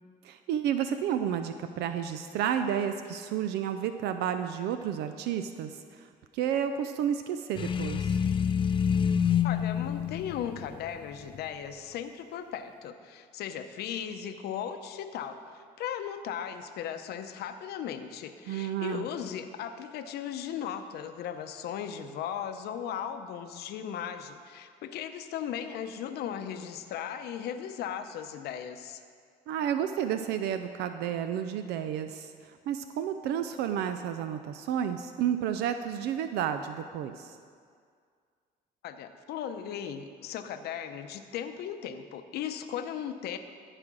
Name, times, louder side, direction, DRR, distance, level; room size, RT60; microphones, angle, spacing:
voice 1, 0.2-8.2 18.5-19.1 29.5-37.4, right 9 dB, 80° right, 9 dB, 0.5 m, -31 dB
sound 1, 7.6-11.5, left 7 dB, 30° left, 0.4 m, -28 dB
voice 2, 9.4-29.0 38.8-43.4, left 9 dB, 70° left, 8 dB, 0.7 m, -37 dB
13.5 x 4.9 x 6.1 m, 2.1 s
cardioid pair, 110°, 17 cm